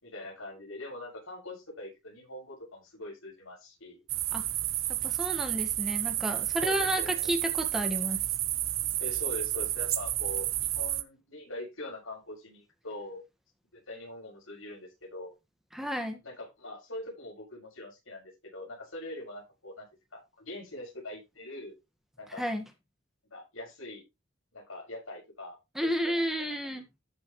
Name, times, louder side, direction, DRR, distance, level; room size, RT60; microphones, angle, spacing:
voice 1, 0.0-4.0 6.5-7.3 9.0-13.2 13.7-15.3 16.2-19.9 20.1-21.7 22.2-22.4 23.3-24.0 24.5-26.6, left 1 dB, 85° left, 6.9 m, -43 dB
sound 1, 4.1-11.0, right 14 dB, 85° right, 0.9 m, -31 dB
voice 2, 5.0-8.2 15.7-16.2 22.4-22.6 25.7-26.8, equal, ahead, 1.7 m, -31 dB
14.5 x 6.5 x 3.2 m
head